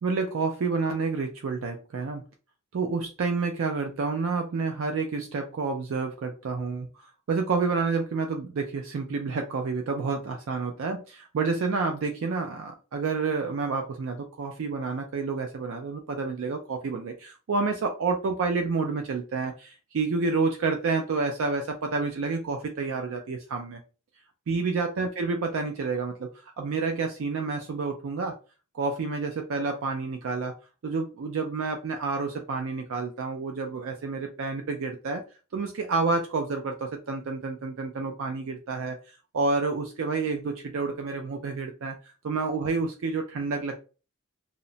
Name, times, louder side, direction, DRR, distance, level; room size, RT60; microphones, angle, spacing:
voice 1, 0.0-2.2 2.7-23.8 24.5-28.4 28.7-30.5 30.8-35.2 35.5-42.0 42.2-43.7, right 4 dB, 65° right, 4 dB, 0.4 m, -29 dB
2.8 x 2.0 x 2.6 m, 0.34 s
head